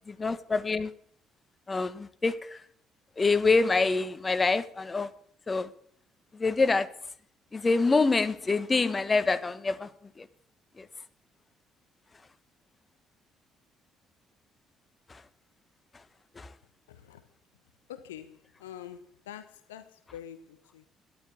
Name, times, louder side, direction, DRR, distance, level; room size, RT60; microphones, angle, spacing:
voice 1, 0.1-0.9 1.7-2.6 3.2-5.1 5.5-5.7 6.3-6.9 7.5-9.9 10.2-10.3 10.8-10.9 15.1-15.2 16.4-16.5, left 3 dB, 25° left, 1.4 m, -26 dB
voice 2, 16.9-17.2 17.9-20.9, left 10 dB, 80° left, 0.9 m, -46 dB
13.0 x 10.5 x 8.5 m
figure-of-eight pair, 50°, 0 cm